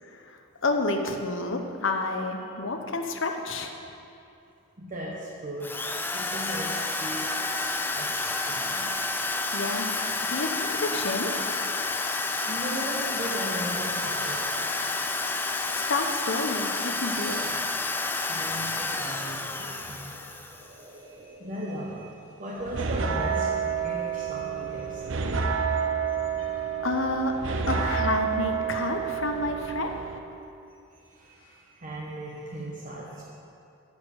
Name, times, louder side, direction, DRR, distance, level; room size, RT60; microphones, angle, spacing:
voice 1, 0.0-3.7 9.5-10.0 10.3-11.3 15.7-17.6 26.8-27.3 27.7-29.9, left 2 dB, 55° left, 4 dB, 0.8 m, -30 dB
voice 2, 4.8-5.8 6.1-8.9 10.6-11.0 12.5-14.5 18.3-25.6 31.0-33.3, right 1 dB, 35° right, -4 dB, 0.9 m, -38 dB
Drill, 5.6-20.8, left 3 dB, 10° left, 0.3 m, -30 dB
sound 1, 22.6-30.2, right 6 dB, 60° right, 0.6 m, -29 dB
10.5 x 5.1 x 8.2 m, 2.7 s
head